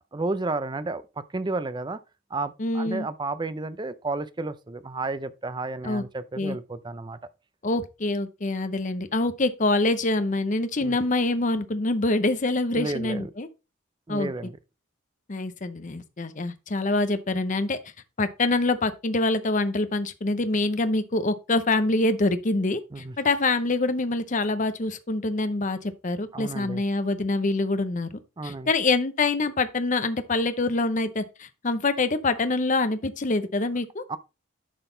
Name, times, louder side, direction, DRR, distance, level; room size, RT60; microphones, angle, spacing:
voice 1, 0.1-2.0 2.3-7.2 10.8-11.0 12.7-13.3 14.1-14.6 22.9-23.2 26.3-26.8 28.4-28.7 34.1-34.2, right 3 dB, 20° right, 0.5 m, -32 dB
voice 2, 2.6-3.1 5.8-6.0 6.4-6.6 7.6-13.5 14.1-14.3 15.3-17.8 18.2-34.0, left 2 dB, 35° left, 0.7 m, -25 dB
11.0 x 4.0 x 3.8 m
head